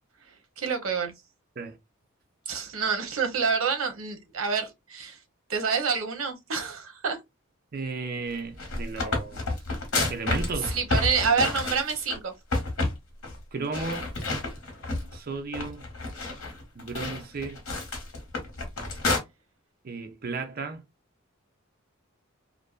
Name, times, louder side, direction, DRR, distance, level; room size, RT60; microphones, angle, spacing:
voice 1, 0.6-1.1 2.5-5.2 5.5-7.2 10.7-12.3, right 5 dB, 80° right, 0.7 m, -27 dB
voice 2, 7.7-9.5 10.1-10.8 13.5-14.1 14.9-15.8 16.7-17.6 19.8-20.8, right 4 dB, 45° right, 0.5 m, -34 dB
sound 1, 8.4-12.2 12.5-13.0 13.2-13.4 13.7-15.1 15.5-19.2, left 2 dB, 75° left, 0.9 m, -29 dB
2.5 x 2.1 x 2.3 m
head